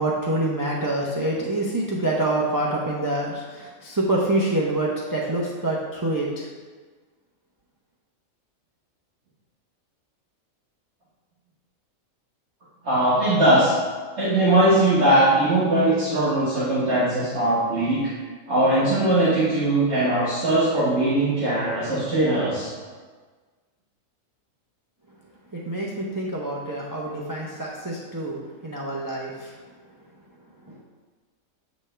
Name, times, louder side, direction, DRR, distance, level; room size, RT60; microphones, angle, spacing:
voice 1, 0.0-6.5 25.5-28.4 28.6-29.5 30.6-30.8, right 1 dB, 25° right, -3 dB, 0.5 m, -26 dB
voice 2, 12.8-13.7 14.2-18.0 18.5-22.7, right 1 dB, 55° right, -11 dB, 1.8 m, -20 dB
7.8 x 5.3 x 3.3 m, 1.4 s
omnidirectional pair, 1.4 m